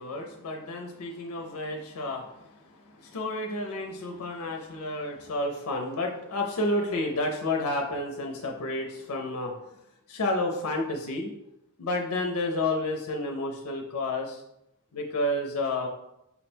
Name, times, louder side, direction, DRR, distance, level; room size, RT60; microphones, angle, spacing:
voice 1, 0.0-9.5 10.1-11.3 11.8-14.4 14.9-15.9, left 2 dB, 80° left, 2 dB, 0.5 m, -30 dB
5.5 x 2.2 x 4.3 m, 0.86 s
head